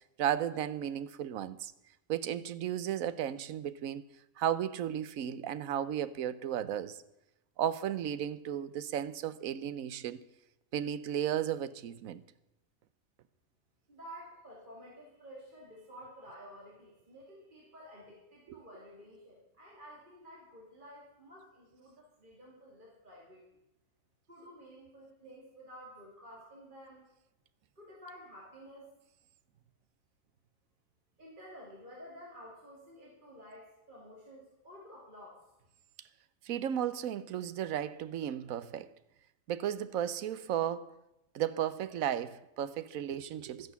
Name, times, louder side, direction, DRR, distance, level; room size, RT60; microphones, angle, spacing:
voice 1, 0.2-1.7 2.1-4.0 4.4-7.0 7.6-10.2 10.7-12.2 36.4-38.9 39.5-40.9 41.3-43.7, right 10 dB, 90° right, 1.1 m, -34 dB
voice 2, 13.9-23.5 24.3-27.0 27.8-28.9 31.2-35.5, equal, 35° right, 2.9 m, -52 dB
13.0 x 10.5 x 7.0 m
omnidirectional pair, 1.4 m